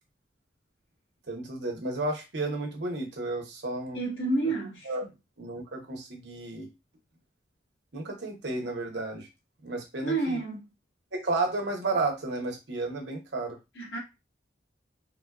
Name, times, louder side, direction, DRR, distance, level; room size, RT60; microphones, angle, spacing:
voice 1, 1.3-4.0 4.8-5.1 5.4-6.7 7.9-9.3 9.6-10.4 11.1-13.6, right 2 dB, 80° right, 0.9 m, -32 dB
voice 2, 3.9-4.9 10.0-10.6 13.8-14.0, right 2 dB, 90° left, 1.5 m, -29 dB
3.6 x 2.2 x 2.4 m
head